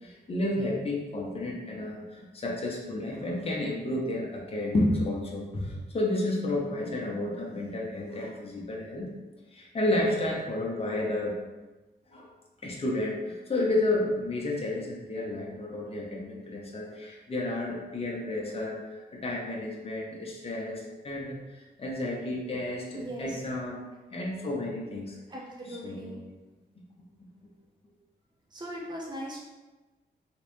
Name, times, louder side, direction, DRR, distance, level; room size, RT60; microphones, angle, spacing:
voice 1, 0.0-9.1 9.5-11.4 12.1-12.3 12.6-18.8 19.1-23.8 24.1-25.2 25.7-26.2, left 1 dB, 35° left, -3 dB, 0.9 m, -31 dB
voice 2, 22.9-23.4 25.3-26.2 28.5-29.4, equal, 25° right, -3 dB, 0.9 m, -39 dB
3.4 x 3.1 x 3.1 m, 1.2 s
cardioid pair, 55°, 18 cm